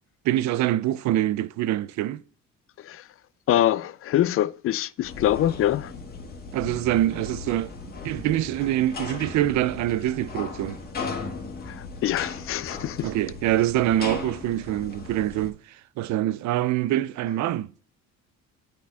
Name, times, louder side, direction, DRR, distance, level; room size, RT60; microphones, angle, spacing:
voice 1, 0.2-2.2 6.5-7.7 8.0-10.8 13.0-17.7, right 13 dB, 65° right, 0.5 m, -25 dB
voice 2, 2.8-3.1 3.5-5.9 11.7-13.1, left 12 dB, 45° left, 0.4 m, -24 dB
sound 1, 5.0-15.5, left 4 dB, 30° left, 2.0 m, -37 dB
11.5 x 4.4 x 3.5 m
cardioid pair, 120°, 31 cm